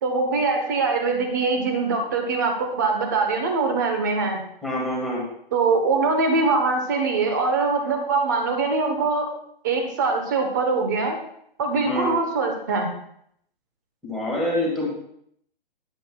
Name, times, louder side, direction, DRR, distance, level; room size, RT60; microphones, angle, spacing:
voice 1, 0.0-4.4 5.5-9.3 9.6-11.2 11.6-12.9, right 4 dB, 20° right, 4 dB, 1.0 m, -23 dB
voice 2, 4.6-5.2 11.8-12.1 14.0-14.9, left 1 dB, ahead, -5 dB, 1.6 m, -26 dB
21.0 x 7.7 x 2.3 m, 0.69 s
hypercardioid pair, 180°, 29 cm